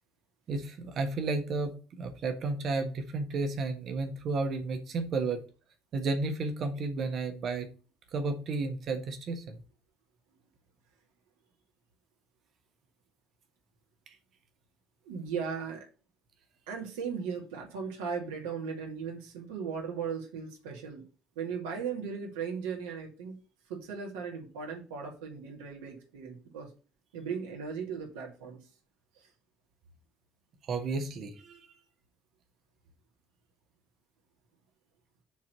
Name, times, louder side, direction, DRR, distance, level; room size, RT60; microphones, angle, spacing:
voice 1, 0.5-5.4 5.9-7.7 8.1-9.6 30.7-31.6, right 3 dB, 50° right, 5 dB, 1.5 m, -32 dB
voice 2, 15.0-15.9 16.7-21.1 21.4-23.4 23.7-26.7 27.1-28.6 29.2-29.3, right 6 dB, 70° right, 1 dB, 2.4 m, -37 dB
7.0 x 4.5 x 6.8 m, 0.36 s
figure-of-eight pair, 50°, 0 cm